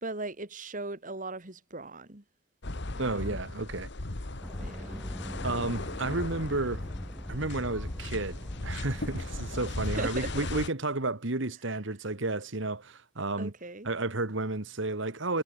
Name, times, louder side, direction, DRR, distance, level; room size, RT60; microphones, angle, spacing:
voice 1, 0.0-2.2 2.9-3.4 4.6-5.1 9.8-10.5 11.7-11.8 13.4-13.9, right 2 dB, 35° right, 2.4 m, -39 dB
sound 1, 2.6-10.7, left 2 dB, 55° left, 1.6 m, -37 dB
voice 2, 3.0-3.9 5.4-6.8 7.3-13.5 13.9-15.4, right 2 dB, 60° right, 1.7 m, -32 dB
sound 2, 4.4-10.1, equal, ahead, 0.7 m, -41 dB
head